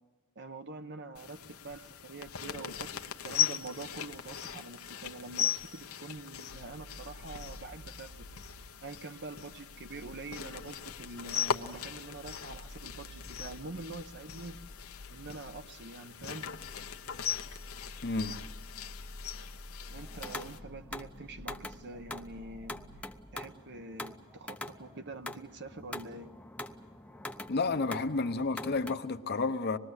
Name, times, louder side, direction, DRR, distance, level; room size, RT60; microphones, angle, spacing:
voice 1, 0.4-8.3 8.8-14.6 15.1-16.5 19.9-22.8 23.0-26.3, right 3 dB, 55° right, 1.1 m, -45 dB
sound 1, 1.1-20.6, left 8 dB, 85° left, 1.1 m, -39 dB
sound 2, 6.5-15.7 16.3-23.0, left 1 dB, 90° right, 5.6 m, -50 dB
voice 2, 18.0-18.4 27.5-29.8, left 3 dB, 50° left, 0.9 m, -31 dB
sound 3, 20.0-29.0, left 1 dB, 5° left, 0.7 m, -44 dB
25.5 x 21.0 x 8.1 m
head